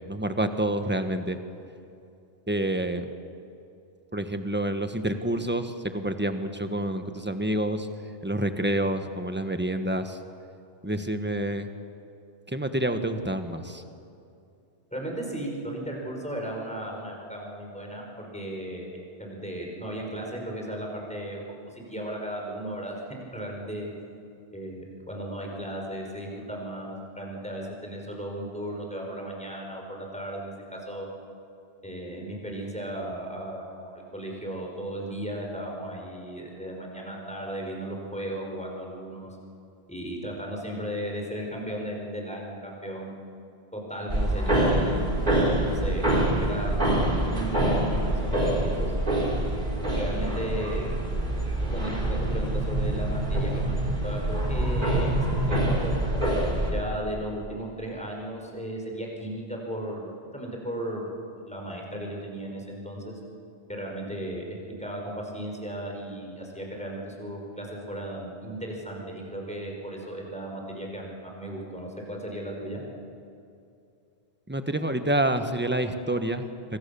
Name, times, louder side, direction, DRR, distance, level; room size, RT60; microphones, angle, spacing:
voice 1, 0.0-1.4 2.5-3.1 4.1-7.9 8.2-10.2 10.8-11.7 12.5-13.8 74.5-76.5, right 1 dB, 10° right, 7 dB, 1.3 m, -28 dB
voice 2, 14.9-21.4 21.7-23.0 23.3-23.9 24.5-31.1 31.8-39.3 39.9-43.2 43.7-45.1 45.7-46.0 46.4-49.0 49.9-51.0 51.7-55.2 55.5-55.9 56.7-61.2 61.5-63.2 63.7-72.8, right 1 dB, 5° left, -1 dB, 5.2 m, -35 dB
sound 1, 44.1-56.7, right 1 dB, 45° right, 4.3 m, -25 dB
26.5 x 25.0 x 7.1 m, 2.6 s
omnidirectional pair, 1.1 m